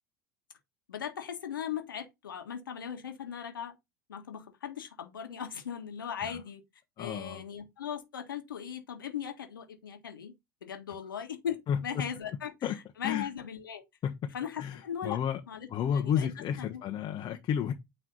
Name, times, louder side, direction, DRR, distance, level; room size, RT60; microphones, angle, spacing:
voice 1, 0.9-3.8 4.1-6.6 7.0-10.3 10.6-12.5 13.0-13.8 14.3-15.2 15.5-16.3 16.6-16.8, left 8 dB, 85° left, 1.5 m, -38 dB
voice 2, 7.0-7.4 11.7-12.1 12.6-12.8 13.0-13.3 14.0-14.1 14.6-15.4 15.7-17.7, left 8 dB, 40° left, 1.1 m, -31 dB
9.4 x 3.3 x 4.0 m
hypercardioid pair, 80°, 11 cm